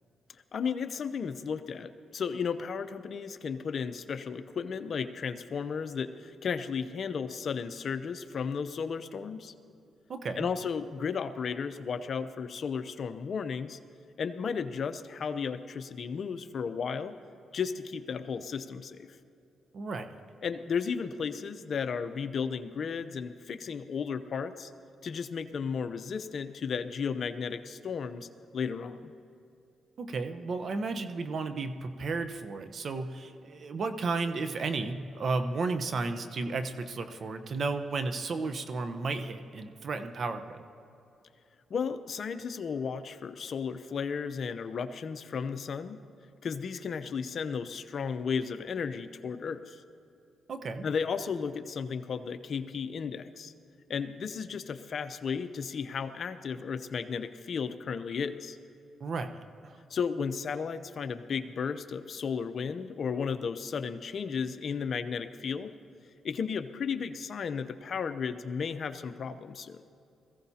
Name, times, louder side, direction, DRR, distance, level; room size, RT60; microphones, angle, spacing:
voice 1, 0.5-9.5 10.4-13.8 14.2-17.1 17.5-19.1 20.4-24.7 25.0-28.3 28.5-29.1 41.7-46.0 46.4-49.8 50.8-53.5 53.9-58.6 59.9-65.7 66.2-69.8, left 6 dB, 60° left, 11 dB, 0.7 m, -34 dB
voice 2, 10.1-10.5 19.7-20.1 30.0-40.6 50.5-50.9 59.0-59.8, right 3 dB, 55° right, 8 dB, 1.0 m, -33 dB
21.5 x 15.5 x 2.8 m, 2.7 s
supercardioid pair, 65°, 0 cm